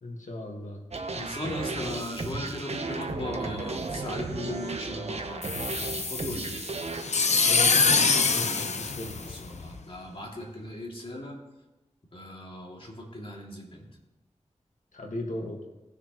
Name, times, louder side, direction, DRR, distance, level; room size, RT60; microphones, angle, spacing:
voice 1, 0.0-0.8 7.5-7.8 8.3-9.1 14.9-15.6, left 1 dB, 90° left, 1 dB, 1.7 m, -36 dB
sound 1, 0.9-7.0, right 3 dB, 60° right, 1.0 m, -34 dB
voice 2, 1.1-6.6 8.3-11.3 12.1-13.9, left 1 dB, 45° left, -2 dB, 2.5 m, -38 dB
sound 2, 5.4-9.8, left 4 dB, 65° left, 0.7 m, -25 dB
18.5 x 6.6 x 3.1 m, 1.0 s
wide cardioid pair, 70°, 12 cm